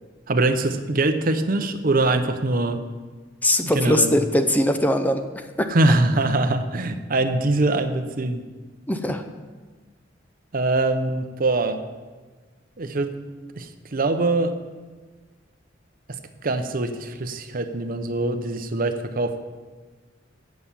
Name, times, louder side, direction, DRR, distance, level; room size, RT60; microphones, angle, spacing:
voice 1, 0.3-2.8 3.6-4.1 5.7-8.4 10.5-11.8 12.8-13.1 13.6-14.5 16.4-19.4, right 2 dB, 50° right, 8 dB, 0.7 m, -23 dB
voice 2, 3.4-5.7 8.9-9.2, left 1 dB, 10° left, 7 dB, 0.5 m, -21 dB
8.3 x 7.9 x 7.2 m, 1.4 s
head